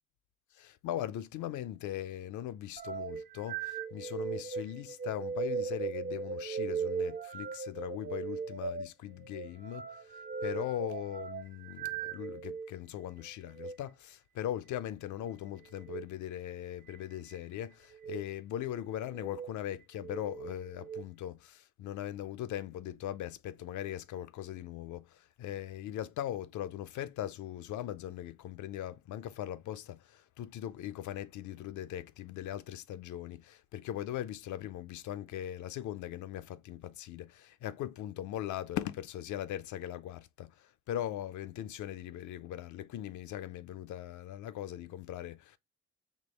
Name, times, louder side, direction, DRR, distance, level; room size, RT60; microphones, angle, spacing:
voice 1, 0.6-9.9 10.1-45.6, left 12 dB, 75° left, 0.5 m, -40 dB
sound 1, 2.8-12.7 13.5-13.8 15.7-16.1 16.9-17.4 17.9-18.2 19.0-19.5 20.0-21.1, right 6 dB, 30° right, 0.4 m, -38 dB
4.4 x 2.9 x 3.2 m
cardioid pair, 90°, 30 cm